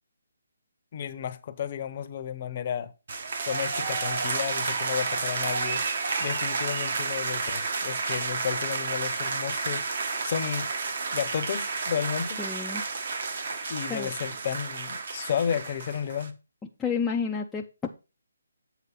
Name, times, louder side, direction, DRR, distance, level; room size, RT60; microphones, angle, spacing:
voice 1, 0.9-2.9 3.5-5.8 6.2-10.7 11.1-12.4 13.7-16.3, left 8 dB, 35° left, 0.8 m, -32 dB
sound 1, 3.1-16.3, right 4 dB, 50° right, 1.1 m, -31 dB
voice 2, 12.4-12.8 13.5-14.1 16.8-17.9, left 6 dB, 5° left, 0.4 m, -31 dB
8.2 x 4.6 x 5.5 m
hypercardioid pair, 165°, 0 cm